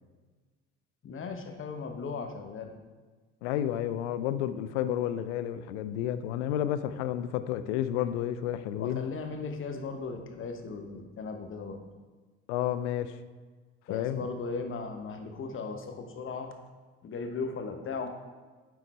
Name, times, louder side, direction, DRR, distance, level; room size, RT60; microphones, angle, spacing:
voice 1, 1.0-2.7 8.8-11.8 13.9-16.5 17.0-18.1, left 4 dB, 35° left, 5 dB, 1.1 m, -37 dB
voice 2, 3.4-9.1 12.5-13.1 13.9-14.2, left 11 dB, 75° left, 12 dB, 0.5 m, -31 dB
9.2 x 3.9 x 4.4 m, 1.4 s
hypercardioid pair, 70°, 35 cm